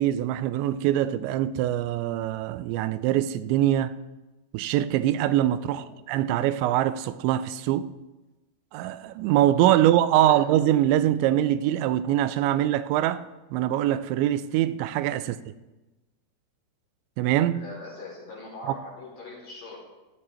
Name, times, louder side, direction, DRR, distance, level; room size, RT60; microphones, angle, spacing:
voice 1, 0.0-3.9 4.5-7.9 8.7-13.2 13.5-15.4 17.2-17.6, right 12 dB, 90° right, 2.9 m, -23 dB
voice 2, 9.7-10.4 15.2-15.3 17.5-19.8, left 3 dB, 50° left, 6.3 m, -42 dB
16.5 x 13.0 x 4.4 m
omnidirectional pair, 5.1 m